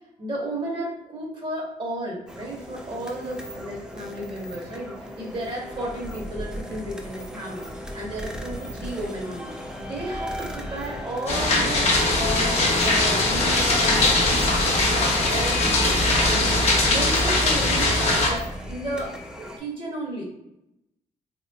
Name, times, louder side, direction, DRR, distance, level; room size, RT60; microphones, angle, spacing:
voice 1, 0.2-7.7 7.9-16.0 16.2-16.6 16.9-20.3, right 1 dB, 35° right, -2 dB, 0.9 m, -33 dB
sound 1, 2.3-19.6, left 1 dB, 5° right, 0.4 m, -36 dB
sound 2, 11.3-18.3, left 2 dB, 50° left, 0.7 m, -21 dB
3.1 x 3.0 x 2.2 m, 0.85 s
cardioid pair, 95°, 14 cm